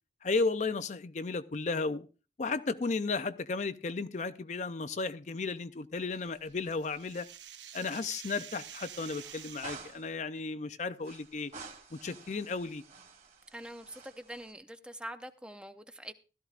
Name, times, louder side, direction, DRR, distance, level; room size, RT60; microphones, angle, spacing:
voice 1, 0.2-2.1 2.4-7.3 7.7-11.5 11.9-12.8, left 4 dB, 40° left, 0.5 m, -34 dB
sound 1, 6.0-6.7 7.0-7.1 8.5-10.2 11.0-14.5, right 4 dB, 45° right, 2.4 m, -51 dB
sound 2, 6.1-9.9, right 10 dB, 75° right, 0.8 m, -48 dB
voice 2, 13.5-16.1, right 1 dB, 5° right, 0.6 m, -44 dB
16.0 x 13.0 x 2.4 m
head